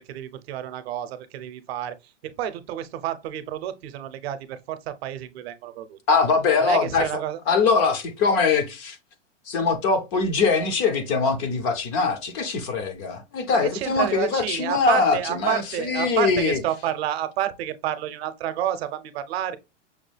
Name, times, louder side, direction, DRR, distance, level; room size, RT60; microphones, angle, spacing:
voice 1, 0.1-2.0 2.2-6.0 6.6-7.4 13.5-19.6, right 11 dB, 55° right, 0.7 m, -29 dB
voice 2, 6.1-7.1 7.5-9.0 9.5-16.6, left 5 dB, 20° left, 0.3 m, -22 dB
6.1 x 2.2 x 3.2 m
hypercardioid pair, 145°, 38 cm